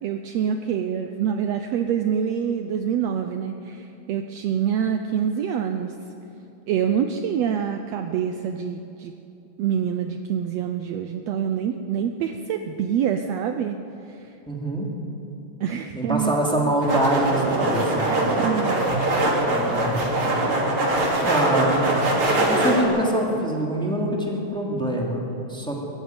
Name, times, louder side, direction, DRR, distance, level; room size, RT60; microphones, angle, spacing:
voice 1, 0.0-6.0 6.7-9.1 9.6-13.8 14.1-14.3 15.6-16.3 16.6-16.7 18.3-19.0, right 8 dB, 80° right, 7 dB, 1.5 m, -26 dB
voice 2, 14.5-14.9 15.9-18.2 19.5-20.2 20.8-21.9 22.5-25.8, right 1 dB, ahead, -2 dB, 2.5 m, -25 dB
sound 1, 16.8-22.8, right 1 dB, 40° right, 3.3 m, -22 dB
22.0 x 14.5 x 9.6 m, 2.9 s
omnidirectional pair, 3.9 m